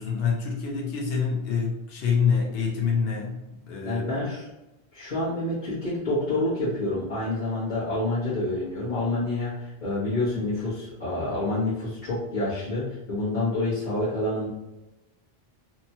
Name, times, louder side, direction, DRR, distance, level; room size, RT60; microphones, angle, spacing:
voice 1, 0.0-4.1, left 6 dB, 70° left, -2 dB, 0.8 m, -26 dB
voice 2, 3.8-4.5 4.9-14.5, left 2 dB, 50° left, -11 dB, 1.1 m, -28 dB
2.9 x 2.2 x 2.7 m, 0.98 s
omnidirectional pair, 1.1 m